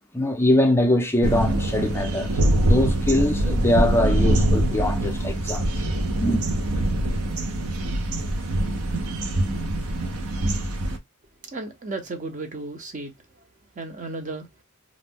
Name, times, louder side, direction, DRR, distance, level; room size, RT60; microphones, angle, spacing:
voice 1, 0.1-5.6 6.2-6.4, left 1 dB, 10° left, 0.4 m, -22 dB
sound 1, 1.2-11.0, right 1 dB, 80° right, 0.6 m, -23 dB
voice 2, 11.5-13.1 13.8-14.5, right 2 dB, 35° right, 0.6 m, -34 dB
2.4 x 2.1 x 3.4 m
head